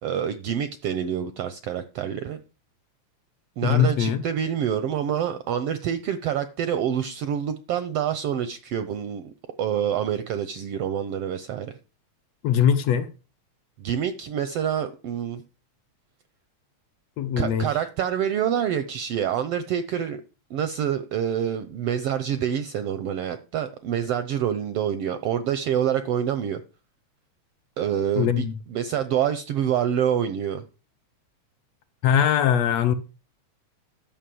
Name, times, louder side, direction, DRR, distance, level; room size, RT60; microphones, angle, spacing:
voice 1, 0.0-2.4 3.6-9.3 9.6-11.7 13.8-15.4 17.4-20.2 20.5-26.6 27.8-30.6, right 9 dB, 80° right, 1.4 m, -27 dB
voice 2, 3.6-4.2 12.4-13.1 17.2-17.7 28.2-28.5 32.0-32.9, left 8 dB, 75° left, 1.7 m, -21 dB
11.5 x 5.6 x 7.6 m
omnidirectional pair, 3.4 m